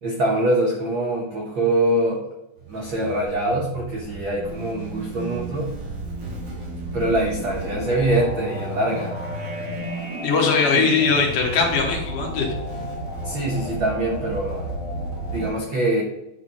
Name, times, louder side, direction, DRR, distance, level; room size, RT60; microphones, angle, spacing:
voice 1, 0.0-2.2 2.6-5.7 6.9-9.1 10.7-10.9 13.2-14.7 15.3-16.0, right 1 dB, 75° right, -3 dB, 1.1 m, -24 dB
sound 1, 2.6-15.5, right 1 dB, 45° right, 1.7 m, -32 dB
voice 2, 10.2-12.5, left 5 dB, 75° left, 0 dB, 2.8 m, -20 dB
9.3 x 3.6 x 4.1 m, 0.97 s
omnidirectional pair, 3.9 m